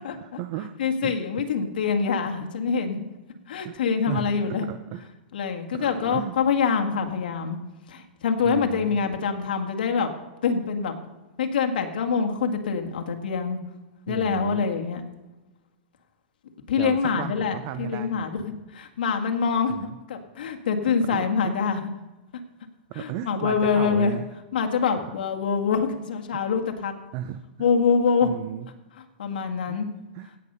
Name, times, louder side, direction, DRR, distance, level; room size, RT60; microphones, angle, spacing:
voice 1, 0.0-0.7 1.0-1.1 3.6-3.8 4.1-5.1 5.7-6.4 8.4-9.0 14.1-14.7 16.8-18.3 19.7-20.0 20.8-21.6 22.9-24.3 25.0-25.1 27.1-27.7 28.2-28.7 29.7-29.8 30.1-30.3, right 11 dB, 30° right, 11 dB, 0.5 m, -35 dB
voice 2, 0.8-3.1 3.5-4.7 5.3-7.6 7.9-10.1 10.4-11.0 11.4-13.6 14.1-15.0 16.7-18.4 18.7-21.9 22.9-24.2 24.5-26.9 27.6-28.3 29.2-29.9, left 6 dB, 80° left, 5 dB, 1.8 m, -25 dB
16.5 x 5.5 x 6.8 m, 1.1 s
supercardioid pair, 170°, 5 cm